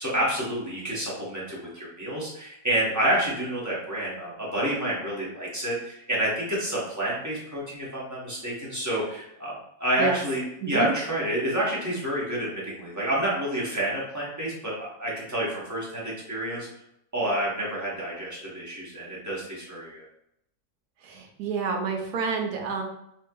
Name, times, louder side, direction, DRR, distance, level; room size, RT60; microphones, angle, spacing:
voice 1, 0.0-9.5 9.8-16.7 17.1-20.0, right 1 dB, 20° right, -6 dB, 0.5 m, -29 dB
voice 2, 21.0-22.8, right 5 dB, 80° right, 2 dB, 1.2 m, -29 dB
3.2 x 2.7 x 2.2 m, 0.77 s
omnidirectional pair, 1.7 m